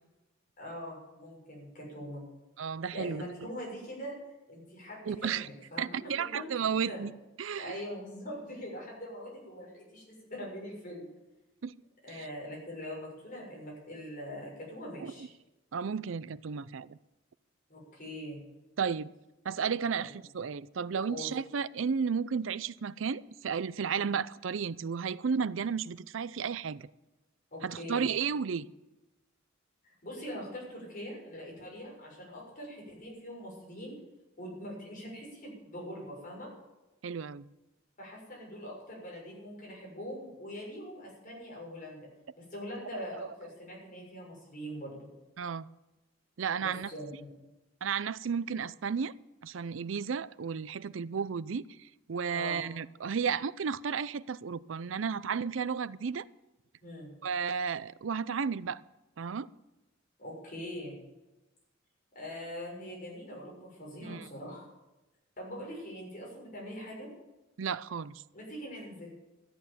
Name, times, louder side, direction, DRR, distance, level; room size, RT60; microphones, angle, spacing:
voice 1, 0.6-2.2 2.9-4.1 4.5-5.1 5.4-6.5 6.9-7.0 7.6-11.1 12.0-15.3 17.7-18.4 21.1-21.3 24.0-24.1 27.5-28.1 30.0-33.9 34.4-36.5 38.0-42.0 42.4-45.1 46.6-47.3 52.3-52.6 56.8-57.1 60.2-61.0 62.1-64.7 65.4-67.1 68.3-69.1, equal, 45° left, 6.6 m, -42 dB
voice 2, 2.6-3.2 5.1-5.5 5.8-7.1 7.4-7.7 11.6-11.7 12.1-12.2 15.0-15.3 15.7-17.0 18.8-19.1 19.4-26.9 27.6-28.7 37.0-37.5 43.1-43.3 45.4-45.7 46.4-46.9 47.8-49.1 49.4-56.3 57.2-58.8 59.2-59.5 64.0-64.3 67.6-68.2, right 6 dB, 70° right, 0.5 m, -33 dB
13.5 x 9.3 x 8.5 m
head